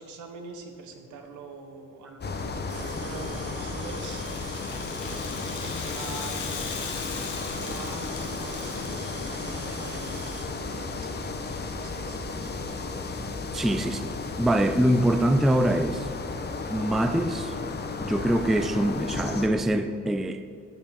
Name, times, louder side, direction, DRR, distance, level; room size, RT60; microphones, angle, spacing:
voice 1, 0.0-4.3 5.4-13.0, right 4 dB, 75° right, 1.4 m, -44 dB
sound 1, 2.2-19.5, left 3 dB, 35° left, 1.0 m, -34 dB
sound 2, 2.7-10.5, right 5 dB, 55° right, 1.2 m, -45 dB
Rattle (instrument), 3.8-9.3, left 7 dB, 80° left, 1.2 m, -39 dB
voice 2, 13.5-16.1 16.7-17.5 18.0-20.5, right 1 dB, ahead, 0.4 m, -24 dB
13.5 x 5.2 x 5.2 m
cardioid pair, 90°, 30 cm